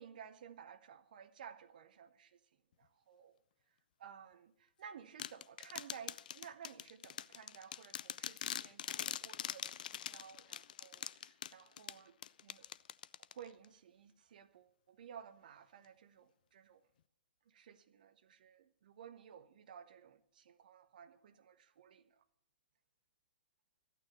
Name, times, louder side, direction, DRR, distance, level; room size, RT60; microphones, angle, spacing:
voice 1, 0.0-2.4 2.8-3.3 4.0-12.2 12.4-12.7 13.3-16.8 17.5-22.2, right 8 dB, 50° right, 0.9 m, -55 dB
sound 1, 5.2-13.7, left 10 dB, 50° left, 0.4 m, -44 dB
13.5 x 9.3 x 7.3 m
figure-of-eight pair, 115°, 6 cm